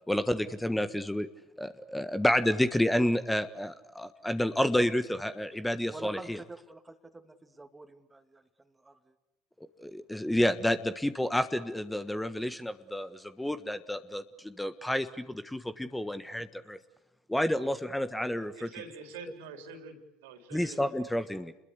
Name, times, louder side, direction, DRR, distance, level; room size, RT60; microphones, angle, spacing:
voice 1, 0.1-1.3 1.6-6.4 9.8-16.8 17.3-18.7 20.5-21.5, left 1 dB, 5° left, 11 dB, 1.4 m, -30 dB
voice 2, 5.9-8.4 8.8-8.9, right 2 dB, 15° right, 6 dB, 2.7 m, -46 dB
voice 3, 18.5-20.8, right 4 dB, 75° right, 6 dB, 4.2 m, -45 dB
29.0 x 21.5 x 8.4 m, 0.89 s
hypercardioid pair, 70°, 0 cm